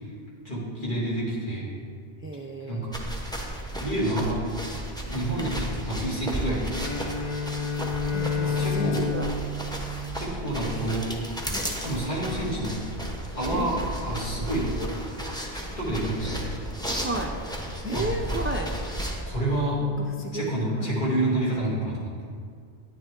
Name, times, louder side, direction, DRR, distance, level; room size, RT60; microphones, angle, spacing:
voice 1, 0.4-1.7 2.6-2.9 3.8-4.7 5.1-7.1 8.4-9.1 10.1-11.1 11.8-12.8 13.3-14.8 15.4-16.5 17.9-18.1 19.3-19.8 20.3-22.2, right 1 dB, 50° left, -7 dB, 2.7 m, -29 dB
voice 2, 2.2-2.9 5.4-5.5 8.1-9.3 11.5-11.8 13.5-13.7 14.6-15.0 17.0-17.4 17.8-18.7 19.8-19.9 20.2-20.9, right 1 dB, 15° right, 2 dB, 0.4 m, -33 dB
sound 1, 2.9-19.2, right 1 dB, 5° left, 0.9 m, -34 dB
Bowed string instrument, 6.8-11.0, left 4 dB, 35° left, 0.9 m, -30 dB
9.8 x 9.7 x 3.8 m, 2.1 s
omnidirectional pair, 1.1 m